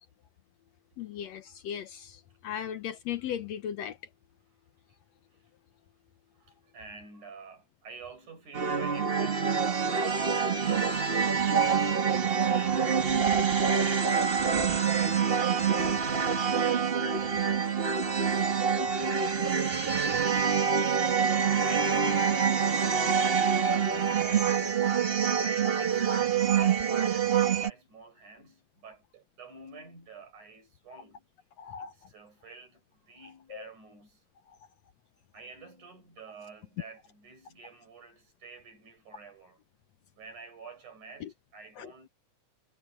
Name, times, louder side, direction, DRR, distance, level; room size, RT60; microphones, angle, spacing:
voice 1, 1.0-4.0 31.6-31.9 33.5-33.6 34.5-34.6 41.2-41.3 41.8-41.9, left 9 dB, 70° left, 1.8 m, -37 dB
voice 2, 6.4-13.1 13.5-17.8 18.1-21.0 21.6-24.6 25.4-31.3 31.8-34.2 35.3-39.6 40.1-42.1, right 4 dB, 70° right, 8.4 m, -50 dB
sound 1, 8.5-27.7, right 6 dB, 40° right, 0.8 m, -26 dB
omnidirectional pair, 3.6 m